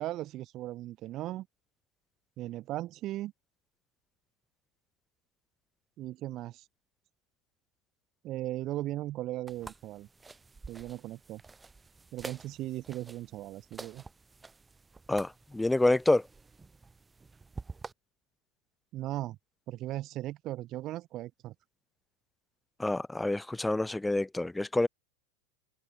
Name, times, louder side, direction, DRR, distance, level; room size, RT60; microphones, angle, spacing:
voice 1, 0.0-1.5 2.4-3.3 6.0-6.7 8.2-10.1 10.7-11.4 12.1-14.0 18.9-19.4 19.7-21.5, right 15 dB, 45° right, 2.4 m, -37 dB
sound 1, 9.5-17.9, right 4 dB, 15° right, 3.6 m, -49 dB
voice 2, 15.1-16.3 22.8-24.9, left 2 dB, 5° left, 3.7 m, -27 dB
hypercardioid pair, 90°, 0 cm